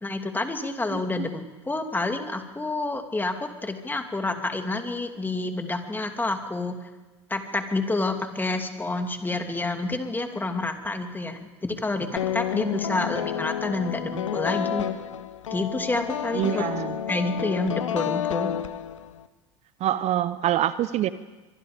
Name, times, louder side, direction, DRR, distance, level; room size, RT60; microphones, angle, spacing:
voice 1, 0.0-6.8 7.3-14.9 15.5-16.7 17.1-18.5, left 2 dB, 10° left, 5 dB, 2.8 m, -28 dB
voice 2, 0.9-1.3 16.3-17.0 19.8-21.1, right 12 dB, 45° right, 14 dB, 0.9 m, -25 dB
sound 1, 12.2-19.3, left 9 dB, 85° left, 0.9 m, -30 dB
24.5 x 23.0 x 5.2 m, 1.2 s
hypercardioid pair, 85°, 16 cm